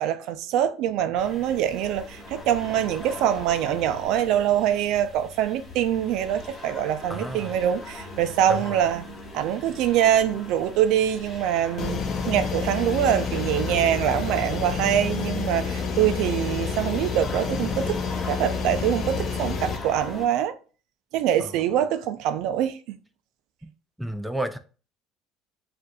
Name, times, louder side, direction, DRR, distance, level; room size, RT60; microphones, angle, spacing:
voice 1, 0.0-9.0 9.3-18.0 18.3-20.6 21.1-23.0, right 10 dB, 70° right, 0.4 m, -24 dB
sound 1, 1.2-20.3, left 2 dB, 25° left, 1.2 m, -41 dB
voice 2, 7.1-7.5 8.5-8.8 21.4-21.5 23.6-23.7 24.0-24.6, right 1 dB, ahead, 0.4 m, -32 dB
sound 2, 11.8-19.8, left 5 dB, 45° left, 0.6 m, -29 dB
7.5 x 2.6 x 2.3 m
supercardioid pair, 100°, 0 cm